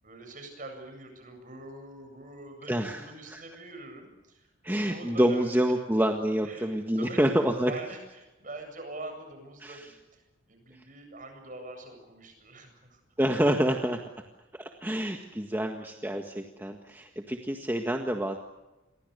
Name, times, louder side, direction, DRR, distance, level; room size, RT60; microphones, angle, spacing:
voice 1, 0.0-4.5 4.8-5.5 6.4-7.2 7.7-10.2 10.5-13.0, right 2 dB, 40° right, 6 dB, 8.0 m, -44 dB
voice 2, 2.7-3.4 4.6-7.7 9.6-9.9 13.2-14.0 14.5-18.4, equal, 10° right, 3 dB, 1.7 m, -27 dB
30.0 x 23.5 x 6.8 m, 1.1 s
head